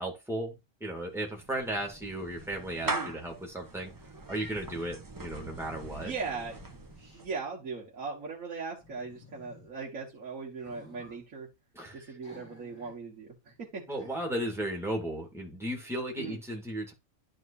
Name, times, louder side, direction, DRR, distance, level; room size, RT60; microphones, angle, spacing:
voice 1, 0.0-3.9 4.3-6.1 11.7-12.1 13.9-16.9, right 1 dB, ahead, 0 dB, 2.1 m, -35 dB
Clapping / Meow, 1.0-7.4, right 2 dB, 20° right, 0.5 m, -41 dB
sound 1, 5.5-7.3 8.8-9.7 10.5-11.2 12.2-13.0 13.3-13.4 13.9-14.8, left 2 dB, 45° left, 3.9 m, -55 dB
voice 2, 6.0-6.6 7.1-11.5 11.9-13.8 16.2-16.4, right 4 dB, 75° right, -3 dB, 1.9 m, -39 dB
11.0 x 4.9 x 2.6 m, 0.23 s
omnidirectional pair, 1.4 m